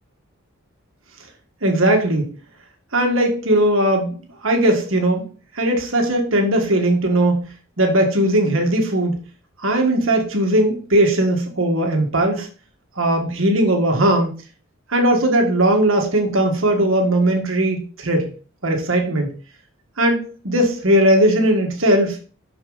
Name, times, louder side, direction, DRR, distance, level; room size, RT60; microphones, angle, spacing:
voice 1, 1.6-2.3 2.9-5.3 5.5-9.2 9.6-12.5 13.0-14.3 14.9-18.3 18.6-19.3 20.0-22.2, right 1 dB, 70° right, 3 dB, 1.6 m, -18 dB
6.8 x 6.1 x 3.9 m, 0.38 s
head